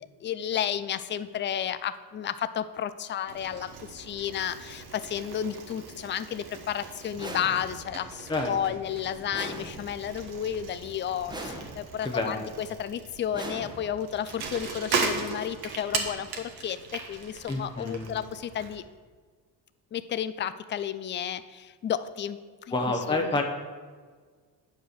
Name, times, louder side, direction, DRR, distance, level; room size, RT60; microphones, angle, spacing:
voice 1, 0.2-18.8 19.9-22.4 22.7-22.8 23.1-23.4, left 9 dB, 30° left, 13 dB, 0.3 m, -32 dB
Bicycle, 3.3-18.8, right 4 dB, 60° right, 1.4 m, -38 dB
sound 1, 7.2-8.0 9.3-10.2 11.3-12.1 13.3-14.2, right 1 dB, 10° right, 1.1 m, -40 dB
voice 2, 12.0-12.5 17.5-18.1 22.7-23.4, left 2 dB, 10° left, 3 dB, 0.8 m, -28 dB
9.1 x 5.1 x 6.5 m, 1.5 s
cardioid pair, 115°, 42 cm